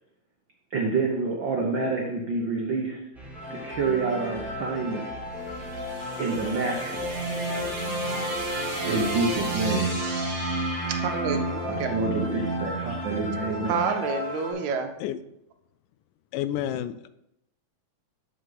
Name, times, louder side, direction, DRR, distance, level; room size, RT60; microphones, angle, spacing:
voice 1, 0.7-3.0 3.5-5.1 6.2-7.1 8.9-10.0 11.6-13.9, right 4 dB, 90° right, 1 dB, 1.0 m, -28 dB
sound 1, 3.1-9.6, equal, ahead, 2.1 m, -42 dB
sound 2, 3.3-14.5, left 2 dB, 50° left, 2.4 m, -36 dB
sound 3, 5.3-13.6, right 2 dB, 35° right, 2.3 m, -31 dB
voice 2, 11.0-11.9 13.7-14.9, right 6 dB, 75° right, 6 dB, 1.9 m, -28 dB
voice 3, 16.3-17.1, left 11 dB, 85° left, 14 dB, 2.1 m, -30 dB
11.0 x 6.0 x 3.9 m, 0.83 s
omnidirectional pair, 3.6 m